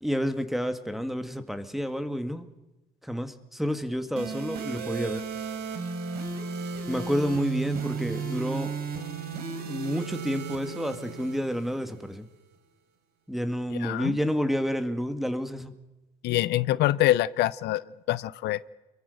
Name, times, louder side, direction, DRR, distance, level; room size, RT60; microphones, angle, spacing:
voice 1, 0.0-2.5 3.0-5.2 6.9-8.7 9.6-12.3 13.3-15.7, equal, ahead, 9 dB, 1.9 m, -29 dB
sound 1, 4.2-12.1, right 5 dB, 65° right, 4.0 m, -34 dB
voice 2, 13.8-14.2 16.2-17.8 18.1-18.6, left 15 dB, 80° left, 17 dB, 0.8 m, -25 dB
29.0 x 22.5 x 6.6 m, 1.1 s
cardioid pair, 110°, 17 cm